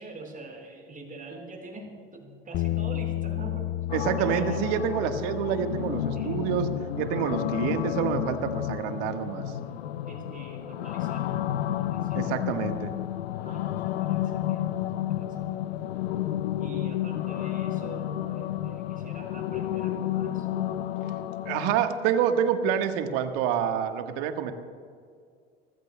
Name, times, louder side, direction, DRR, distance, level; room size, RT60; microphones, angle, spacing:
voice 1, 0.0-3.7 4.2-4.7 6.1-6.5 10.1-12.4 13.4-15.8 16.6-20.5, right 3 dB, 25° right, 1 dB, 4.5 m, -45 dB
Bass guitar, 2.5-8.8, left 15 dB, 45° left, 0.4 m, -34 dB
sound 1, 3.9-21.8, left 12 dB, 80° left, 0.6 m, -31 dB
voice 2, 3.9-6.7 7.0-9.4 12.1-12.9 21.4-24.5, right 8 dB, 65° right, 7 dB, 1.5 m, -27 dB
28.0 x 15.0 x 2.2 m, 2.1 s
hypercardioid pair, 75°, 31 cm